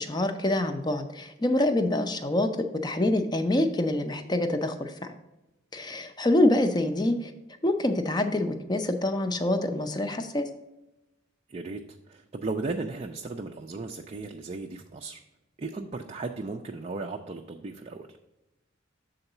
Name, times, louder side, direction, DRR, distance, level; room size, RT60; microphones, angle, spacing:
voice 1, 0.0-2.5 2.8-5.1 5.7-7.3 7.6-10.4, left 1 dB, 20° left, 7 dB, 0.5 m, -26 dB
voice 2, 11.5-11.8 12.1-15.2 15.6-18.2, right 3 dB, 30° right, 2 dB, 0.4 m, -36 dB
7.0 x 3.9 x 5.5 m, 0.99 s
head